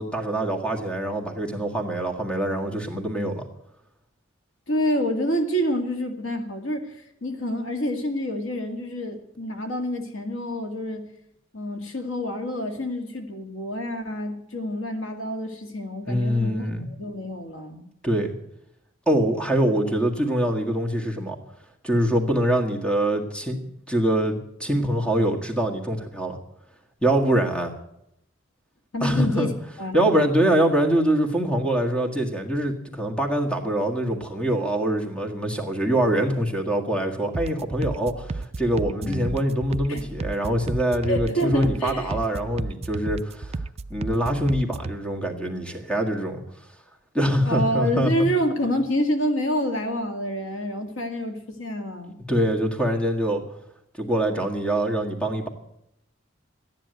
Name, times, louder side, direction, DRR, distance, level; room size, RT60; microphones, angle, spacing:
voice 1, 0.0-3.4 16.1-16.9 18.0-18.3 19.1-21.4 21.8-23.6 23.9-26.4 27.0-27.7 29.0-29.5 29.9-43.6 43.9-46.4 47.1-48.3 52.3-53.4 54.0-55.5, right 1 dB, 5° left, 3 dB, 1.8 m, -24 dB
voice 2, 4.7-6.9 7.2-11.1 11.5-17.9 28.9-29.5 29.8-30.2 39.0-39.3 39.9-40.0 41.1-42.1 47.4-52.2, equal, 85° left, 5 dB, 2.1 m, -27 dB
sound 1, 37.3-45.0, right 3 dB, 30° right, 0.4 m, -33 dB
14.0 x 10.0 x 7.9 m, 0.80 s
head